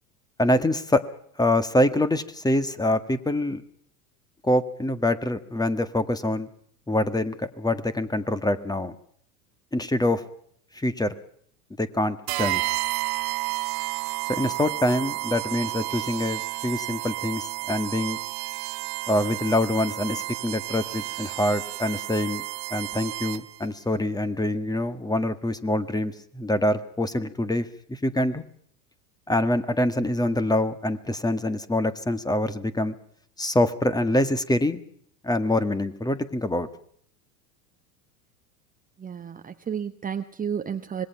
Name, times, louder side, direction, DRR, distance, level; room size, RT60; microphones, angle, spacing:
voice 1, 0.4-1.0 1.4-3.6 4.4-6.5 6.9-8.9 9.7-10.2 10.7-11.1 11.8-12.6 14.3-18.2 19.1-22.4 22.7-28.4 29.3-32.9 33.4-34.8 35.2-36.7, left 1 dB, 10° left, 12 dB, 1.7 m, -25 dB
sound 1, 12.3-23.6, right 22 dB, 50° right, 1.1 m, -31 dB
voice 2, 39.0-41.1, right 7 dB, 15° right, 8 dB, 1.0 m, -32 dB
26.0 x 21.5 x 5.8 m, 0.65 s
hypercardioid pair, 100°, 49 cm